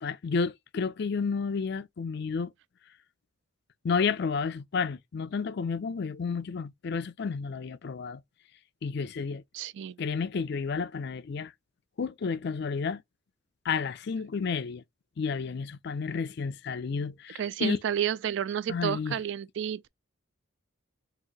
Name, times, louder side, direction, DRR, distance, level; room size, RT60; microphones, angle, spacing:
voice 1, 0.0-2.5 3.8-8.2 8.8-9.4 10.0-11.5 12.0-13.0 13.6-14.8 15.2-17.8 18.7-19.2, left 5 dB, 55° left, 0.4 m, -31 dB
voice 2, 9.5-10.0 17.3-19.9, right 9 dB, 60° right, 0.3 m, -31 dB
4.0 x 2.7 x 3.9 m
head